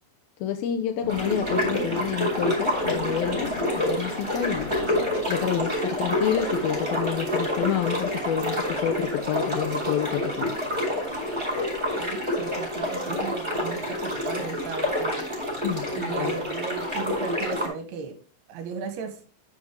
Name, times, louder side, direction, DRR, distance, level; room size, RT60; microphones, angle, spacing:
voice 1, 0.4-4.7 5.3-10.5 15.6-16.3, left 9 dB, 85° left, 2.2 m, -28 dB
sound 1, 1.0-16.0, left 1 dB, 45° left, 1.1 m, -43 dB
sound 2, 1.1-17.7, left 1 dB, 15° right, 3.8 m, -28 dB
voice 2, 12.0-15.3 15.9-18.1 18.5-19.2, right 6 dB, 75° right, 2.9 m, -36 dB
9.6 x 6.8 x 3.6 m
omnidirectional pair, 5.0 m